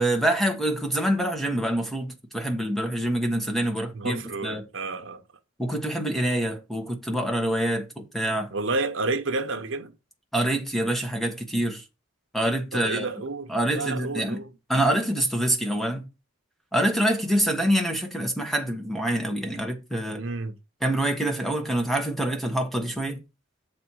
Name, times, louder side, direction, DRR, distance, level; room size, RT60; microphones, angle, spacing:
voice 1, 0.0-4.6 5.6-8.5 10.3-11.8 12.3-13.1 13.5-14.4 14.7-16.1 16.7-20.2 20.8-23.2, right 1 dB, ahead, 1.3 m, -26 dB
voice 2, 3.9-5.2 8.5-9.9 12.7-14.5 20.2-20.5, right 3 dB, 75° right, 0.9 m, -30 dB
7.1 x 4.3 x 6.2 m
head